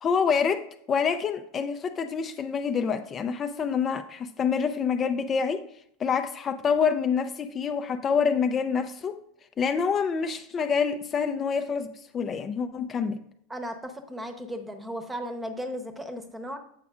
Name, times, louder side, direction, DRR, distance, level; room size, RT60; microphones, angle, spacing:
voice 1, 0.0-5.6 6.0-9.2 9.6-13.2, left 6 dB, 35° left, 8 dB, 0.5 m, -27 dB
voice 2, 13.5-16.6, equal, 10° right, 7 dB, 0.9 m, -35 dB
8.2 x 5.8 x 2.5 m, 0.69 s
hypercardioid pair, 90°, 0 cm